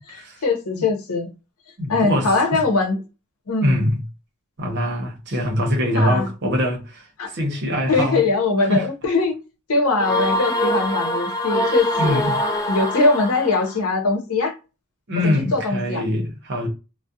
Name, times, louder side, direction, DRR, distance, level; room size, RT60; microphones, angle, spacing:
voice 1, 0.1-1.3 1.9-3.0 3.5-3.9 5.9-6.3 7.2-7.3 7.9-9.3 9.7-12.3 12.7-14.5 15.2-16.0, left 3 dB, 85° left, 0.7 m, -21 dB
voice 2, 1.8-2.6 3.6-4.0 4.6-8.2 8.7-8.9 12.0-12.4 15.1-16.7, left 1 dB, 50° right, 0.8 m, -23 dB
sound 1, 10.0-13.8, equal, 15° left, 0.4 m, -23 dB
2.3 x 2.1 x 2.6 m
head